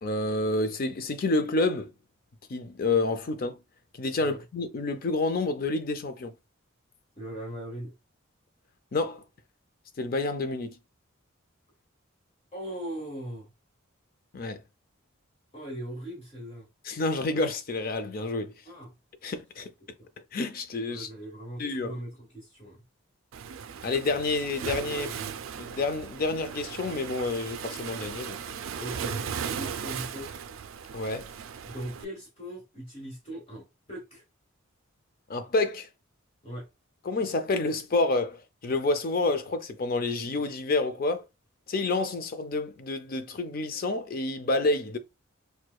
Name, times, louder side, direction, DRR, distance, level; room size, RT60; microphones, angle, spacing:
voice 1, 0.0-1.9 2.5-3.6 3.9-6.3 8.9-9.2 10.0-10.8 14.3-14.6 16.8-18.5 19.2-19.7 20.3-21.1 21.6-21.9 23.8-25.1 25.6-28.4 30.9-31.3 35.3-35.9 37.0-41.2 41.7-45.0, left 2 dB, 45° left, 0.5 m, -29 dB
voice 2, 7.2-7.9 12.5-13.5 15.5-16.7 18.6-18.9 20.9-22.8 25.0-25.4 28.7-30.4 31.6-34.2 36.4-36.7, right 1 dB, 30° left, 1.5 m, -40 dB
Waves surf, 23.3-32.0, right 7 dB, 70° right, 0.3 m, -37 dB
4.5 x 2.2 x 2.3 m
head